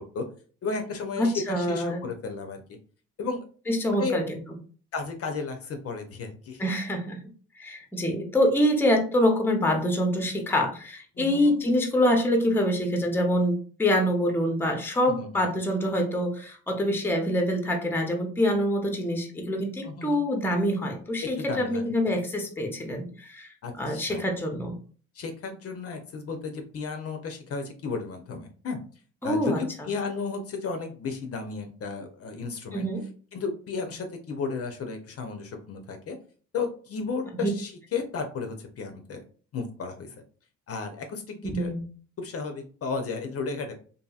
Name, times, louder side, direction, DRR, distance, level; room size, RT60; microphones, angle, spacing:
voice 1, 0.6-2.6 3.2-3.4 4.0-4.2 4.9-6.6 11.1-11.6 15.2-15.5 19.8-20.2 21.4-21.9 23.6-24.2 25.1-28.8 29.2-32.9 33.3-36.2 36.5-39.2 39.5-40.2 40.7-41.7 42.2-43.7, left 4 dB, 50° left, 6 dB, 0.6 m, -33 dB
voice 2, 1.2-2.0 3.7-4.2 6.6-7.2 7.6-24.8 29.2-29.6 32.7-33.0 37.3-37.5 41.4-41.8, equal, 5° left, 4 dB, 0.6 m, -25 dB
2.7 x 2.6 x 2.3 m, 0.41 s
cardioid pair, 90°, 30 cm